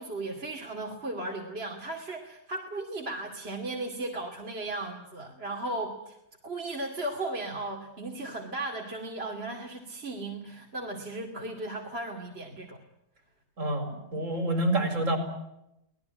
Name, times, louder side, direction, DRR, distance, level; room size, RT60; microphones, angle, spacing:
voice 1, 0.0-6.2 6.4-12.8, right 2 dB, 45° right, 1 dB, 2.7 m, -36 dB
voice 2, 13.6-15.2, right 1 dB, 60° right, 7 dB, 5.3 m, -27 dB
26.0 x 18.5 x 9.7 m, 0.85 s
omnidirectional pair, 1.5 m